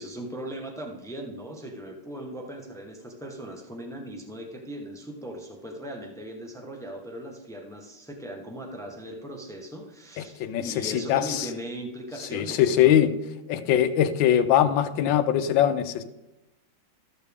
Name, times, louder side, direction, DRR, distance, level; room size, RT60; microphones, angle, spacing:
voice 1, 0.0-13.0, right 1 dB, 5° left, 2 dB, 0.7 m, -39 dB
voice 2, 10.4-11.5 12.3-13.1 13.5-16.0, left 10 dB, 75° left, 10 dB, 1.4 m, -22 dB
13.5 x 6.8 x 3.5 m, 0.98 s
omnidirectional pair, 2.2 m